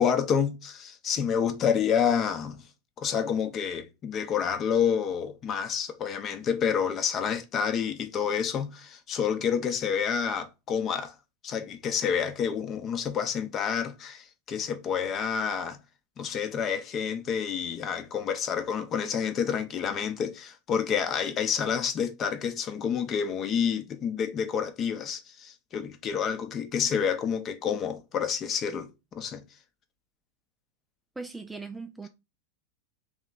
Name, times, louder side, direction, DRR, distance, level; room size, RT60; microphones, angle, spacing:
voice 1, 0.0-2.6 3.0-11.1 11.4-15.8 16.2-28.9 29.1-29.4, left 7 dB, 30° left, 0.7 m, -28 dB
voice 2, 31.2-32.1, right 4 dB, 10° right, 0.3 m, -39 dB
3.2 x 3.1 x 3.8 m
figure-of-eight pair, 90°, 0 cm